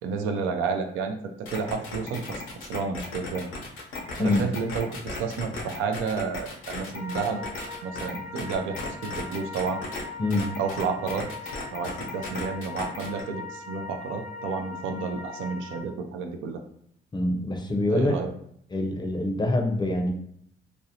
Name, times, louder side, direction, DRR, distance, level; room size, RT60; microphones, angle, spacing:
voice 1, 0.0-3.5 4.2-7.4 7.8-9.8 10.6-11.3 11.7-16.6 17.9-18.3, right 5 dB, 90° right, 5 dB, 0.4 m, -31 dB
sound 1, 1.5-10.0 10.3-13.2, left 3 dB, 85° left, 0.6 m, -36 dB
sound 2, 6.9-15.8, left 4 dB, 35° right, 0.8 m, -40 dB
voice 2, 17.1-18.1 18.7-20.1, left 1 dB, 20° left, 4 dB, 0.5 m, -25 dB
2.5 x 2.0 x 2.7 m, 0.69 s
cardioid pair, 90°, 20 cm